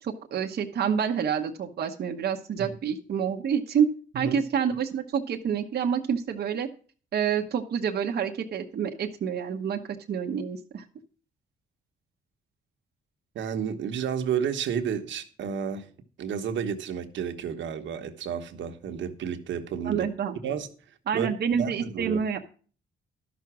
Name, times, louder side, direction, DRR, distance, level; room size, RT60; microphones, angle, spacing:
voice 1, 0.0-3.9 4.1-6.7 7.1-9.8 10.1-10.8 19.8-20.4 21.1-22.4, right 7 dB, 55° right, 1.0 m, -28 dB
voice 2, 13.3-15.9 16.2-20.1 20.4-20.7 21.1-22.2, right 7 dB, 70° right, 1.2 m, -31 dB
12.0 x 6.1 x 6.0 m
cardioid pair, 90°, 20 cm